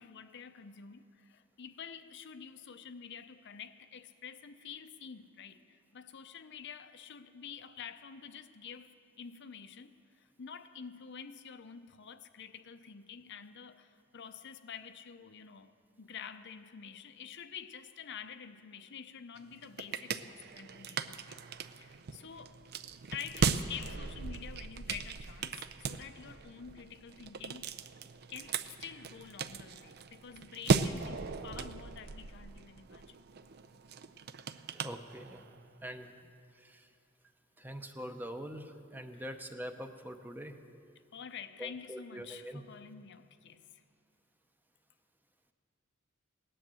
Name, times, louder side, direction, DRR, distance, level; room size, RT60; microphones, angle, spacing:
voice 1, 0.0-15.7 16.0-21.5 21.8-22.6 23.1-27.8 28.3-33.2 39.1-39.4 41.1-43.8, left 7 dB, 60° left, 10 dB, 0.6 m, -48 dB
sound 1, 19.4-35.6, right 5 dB, 50° right, 0.5 m, -37 dB
voice 2, 34.7-35.5 35.8-36.2 36.5-36.9 37.6-40.6 41.6-42.6, equal, 10° right, 7 dB, 0.7 m, -44 dB
17.5 x 10.0 x 7.6 m, 2.3 s
head